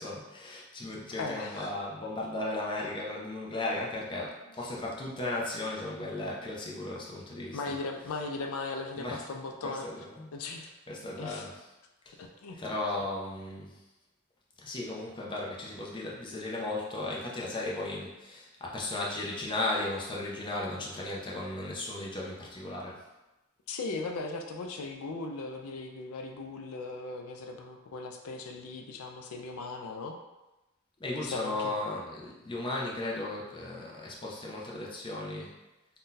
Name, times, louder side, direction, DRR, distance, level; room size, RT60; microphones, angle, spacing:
voice 1, 0.0-7.6 9.0-9.2 9.6-10.3 10.9-11.5 12.6-13.8 14.6-23.0 31.0-35.6, left 2 dB, 25° left, -3 dB, 0.5 m, -35 dB
voice 2, 1.2-1.7 4.6-4.8 7.5-10.1 10.3-10.7 11.2-11.5 12.2-12.6 23.7-30.2 31.2-31.8, left 3 dB, 90° left, 4 dB, 0.4 m, -38 dB
2.6 x 2.2 x 3.8 m, 1.0 s
head